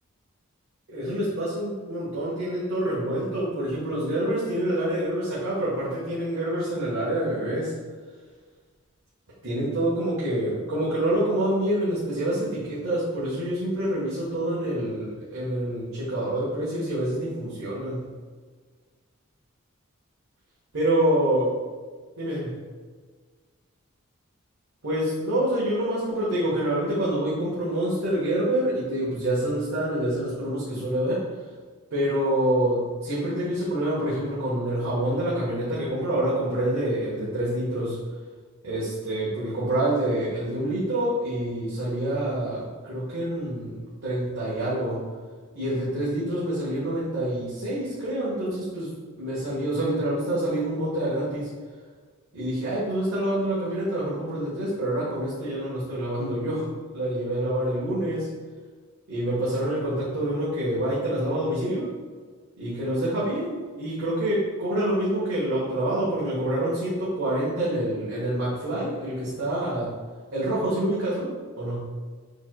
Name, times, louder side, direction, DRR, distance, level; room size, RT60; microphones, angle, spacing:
voice 1, 0.9-7.7 9.4-18.1 20.7-21.5 22.2-22.6 24.8-31.2 31.9-38.0 38.6-45.0 45.5-51.5 52.3-58.3 59.1-61.9 62.6-69.9 70.3-71.9, right 1 dB, 70° right, -8 dB, 1.2 m, -27 dB
7.0 x 3.0 x 2.2 m, 1.5 s
head